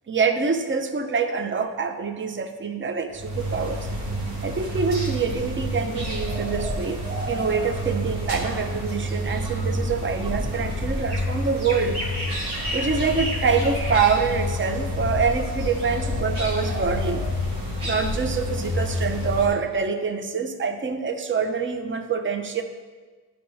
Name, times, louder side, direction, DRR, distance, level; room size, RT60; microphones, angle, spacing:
voice 1, 0.1-3.9 4.4-7.0 7.3-12.2 12.6-17.2 17.8-22.6, right 5 dB, 30° right, 7 dB, 0.7 m, -25 dB
sound 1, 3.1-19.5, left 1 dB, 85° right, 2.1 m, -28 dB
11.5 x 5.1 x 3.2 m, 1.4 s
cardioid pair, 65°, 38 cm